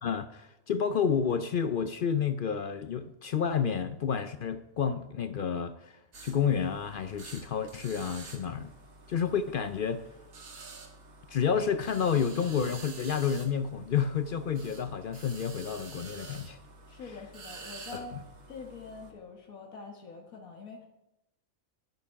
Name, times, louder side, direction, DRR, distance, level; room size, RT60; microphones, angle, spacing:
voice 1, 0.0-8.7 9.1-10.0 11.3-16.6 17.9-18.0, left 7 dB, 60° left, 11 dB, 0.5 m, -30 dB
sound 1, 6.1-19.1, right 3 dB, 80° right, 1.9 m, -49 dB
voice 2, 16.9-18.1 18.5-20.9, left 4 dB, 80° left, 1 dB, 1.9 m, -45 dB
11.0 x 9.2 x 5.7 m, 0.89 s
omnidirectional pair, 1.5 m